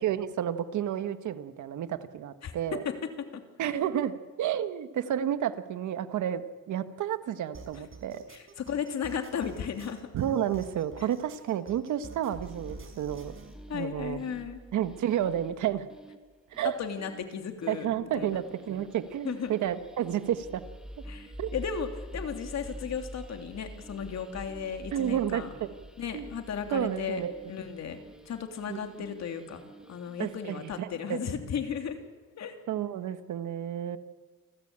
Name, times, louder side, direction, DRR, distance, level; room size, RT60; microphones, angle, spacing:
voice 1, 0.0-2.8 3.6-6.4 6.7-8.2 10.1-13.3 13.7-14.2 14.7-15.9 16.5-16.7 17.7-20.6 21.4-21.5 24.9-25.7 26.1-26.3 26.7-27.3 28.7-28.8 30.2-31.2 32.7-34.0, right 10 dB, 75° right, 11 dB, 1.5 m, -31 dB
voice 2, 3.3-3.8 8.3-10.1 11.0-11.1 13.7-14.6 16.8-18.4 19.2-19.5 21.1-25.5 26.0-27.2 27.5-28.0 28.2-29.6 29.9-32.0 32.4-32.6, left 7 dB, 60° left, 5 dB, 3.0 m, -35 dB
sound 1, 7.5-13.5, right 5 dB, 45° right, 5.1 m, -49 dB
sound 2, 12.4-30.8, equal, ahead, 1.9 m, -47 dB
28.0 x 13.5 x 8.8 m, 1.5 s
cardioid pair, 90°, 30 cm